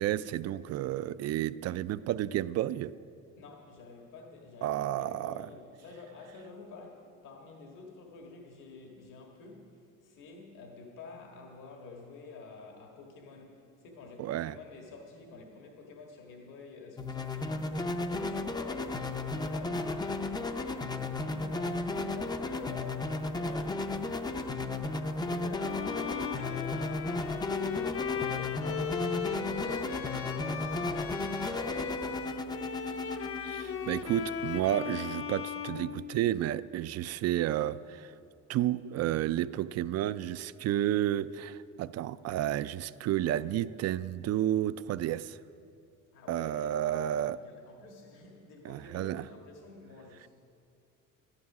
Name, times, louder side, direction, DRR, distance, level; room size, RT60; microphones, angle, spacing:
voice 1, 0.0-2.9 4.6-5.5 14.2-14.6 33.4-38.1 38.5-45.4 46.3-47.4 48.6-49.2, right 12 dB, 50° right, 0.4 m, -31 dB
voice 2, 3.4-29.3 29.6-32.6 46.1-50.3, left 4 dB, 70° left, 1.7 m, -49 dB
sound 1, 17.0-34.7, left 2 dB, 15° left, 0.5 m, -34 dB
Bowed string instrument, 25.6-36.6, left 7 dB, 45° left, 0.8 m, -38 dB
12.5 x 11.5 x 6.0 m
cardioid pair, 125°, 33 cm